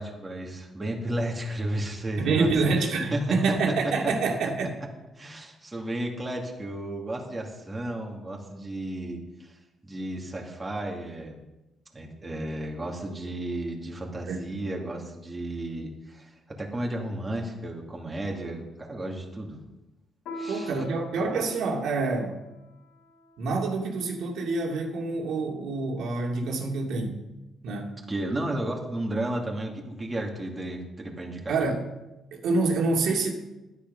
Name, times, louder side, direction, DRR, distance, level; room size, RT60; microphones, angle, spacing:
voice 1, 0.0-2.5 3.1-3.8 4.4-4.5 5.2-11.4 11.9-19.6 20.4-20.7 28.1-31.5, right 1 dB, 20° right, 0 dB, 2.6 m, -33 dB
voice 2, 2.2-4.7 14.3-14.4 20.5-22.4 23.4-27.2 27.6-27.9 31.5-31.8 32.3-33.3, right 3 dB, 75° right, 1 dB, 2.6 m, -27 dB
Piano, 20.3-25.2, right 1 dB, 85° left, 4.7 m, -44 dB
12.0 x 10.0 x 5.5 m, 0.98 s
cardioid pair, 90°, 0 cm